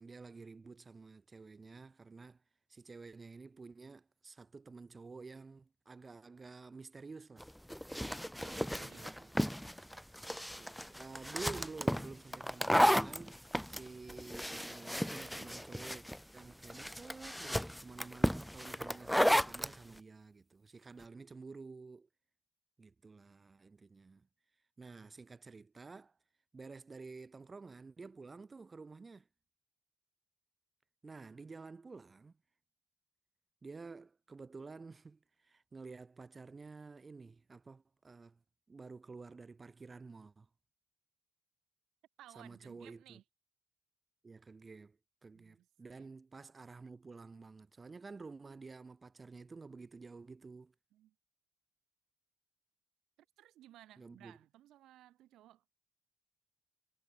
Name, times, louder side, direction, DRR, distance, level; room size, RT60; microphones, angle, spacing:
voice 1, 0.0-2.4 2.7-7.5 8.5-9.3 10.5-13.4 13.7-16.1 16.3-22.1 22.8-24.3 24.8-26.2 26.5-29.3 31.0-32.3 33.6-38.4 38.7-40.5 42.4-43.2 44.2-50.7 54.0-54.4, right 4 dB, 30° right, 2.0 m, -51 dB
sound 1, 7.4-19.7, equal, ahead, 0.4 m, -34 dB
voice 2, 8.1-9.2 42.2-43.2 45.3-46.1 50.9-51.1 53.2-55.6, right 13 dB, 85° right, 5.0 m, -60 dB
cardioid pair, 90°, 0 cm